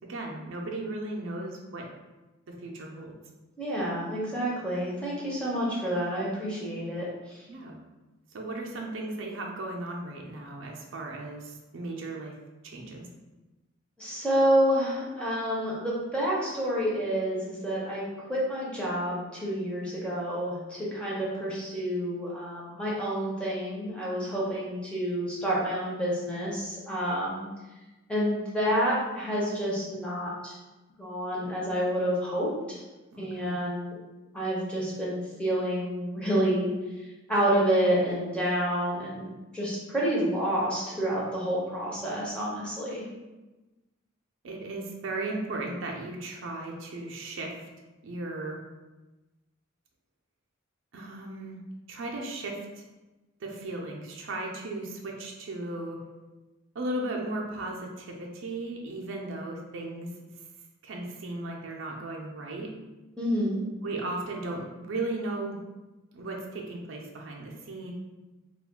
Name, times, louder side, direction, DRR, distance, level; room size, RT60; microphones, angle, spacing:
voice 1, 0.0-1.9 2.5-3.1 7.5-7.8 8.3-12.3 12.6-13.1 33.1-33.5 44.4-47.5 48.0-48.6 50.9-51.6 51.9-52.8 53.4-56.0 56.7-60.1 60.8-62.7 63.8-65.6 66.1-67.9, right 2 dB, 65° right, -1 dB, 0.4 m, -36 dB
voice 2, 3.6-7.4 14.0-27.5 28.1-30.5 31.0-32.8 33.2-34.0 34.3-36.7 37.0-43.1 63.2-63.6, equal, 5° left, -6 dB, 0.6 m, -29 dB
2.4 x 2.2 x 3.5 m, 1.1 s
head